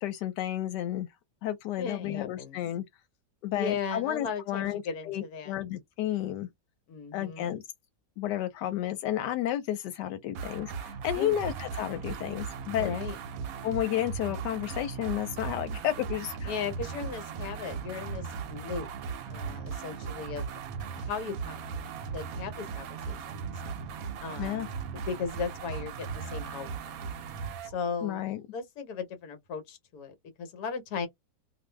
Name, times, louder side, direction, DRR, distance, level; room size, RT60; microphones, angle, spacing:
voice 1, 0.0-1.1 1.4-2.8 3.4-6.5 7.1-7.6 8.2-12.9 13.6-16.5 24.4-24.7 28.0-28.4, left 12 dB, 90° left, 1.2 m, -32 dB
voice 2, 1.8-2.6 3.5-5.5 6.9-7.6 11.1-11.4 12.8-13.2 16.4-18.9 19.3-20.4 21.0-21.6 22.1-23.4 24.2-24.7 25.1-27.1 27.6-31.1, left 5 dB, 70° left, 1.3 m, -37 dB
sound 1, 10.3-27.7, right 6 dB, 70° right, 0.9 m, -38 dB
2.6 x 2.4 x 3.2 m
omnidirectional pair, 1.8 m